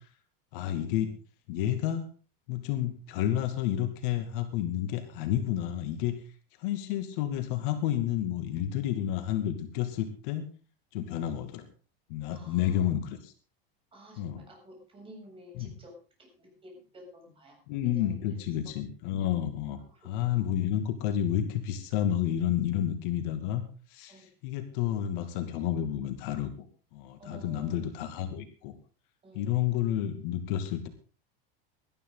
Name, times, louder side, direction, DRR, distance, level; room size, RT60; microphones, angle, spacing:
voice 1, 0.5-1.1 1.5-2.1 2.5-6.2 6.6-10.5 10.9-11.6 12.1-13.3 14.2-14.4 15.6-15.7 17.7-19.8 20.0-23.6 23.9-26.5 26.9-28.7 29.3-30.9, left 11 dB, 60° left, 7 dB, 2.5 m, -30 dB
voice 2, 12.3-12.9 13.9-17.6 17.8-18.4 19.9-20.5 24.1-24.3 27.2-27.8 29.2-29.5, equal, 20° right, 0 dB, 7.8 m, -52 dB
19.5 x 13.0 x 4.0 m, 0.36 s
supercardioid pair, 145°, 29 cm